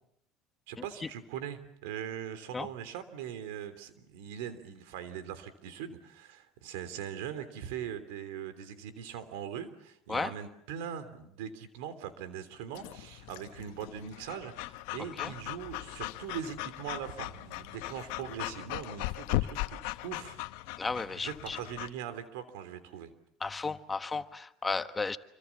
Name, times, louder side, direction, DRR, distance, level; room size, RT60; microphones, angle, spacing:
voice 1, 0.7-20.4 21.2-23.1, right 9 dB, 85° right, 11 dB, 3.3 m, -41 dB
Breathing / Dog, 12.7-21.9, left 18 dB, 80° left, 1.1 m, -38 dB
voice 2, 20.8-21.6 23.4-25.2, left 4 dB, 15° left, 10 dB, 1.3 m, -34 dB
27.0 x 25.0 x 7.3 m, 0.77 s
supercardioid pair, 110°, 0 cm